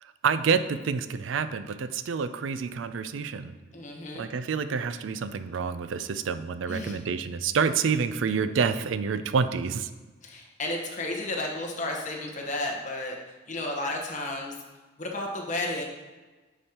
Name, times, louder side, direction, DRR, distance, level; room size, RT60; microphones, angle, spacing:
voice 1, 0.2-3.6 4.1-9.9, right 6 dB, 80° right, 12 dB, 0.4 m, -28 dB
voice 2, 3.7-4.3 6.7-7.0 10.2-13.2 13.5-14.5 15.0-15.8, left 2 dB, 40° left, 0 dB, 1.2 m, -32 dB
9.6 x 5.0 x 2.9 m, 1.3 s
head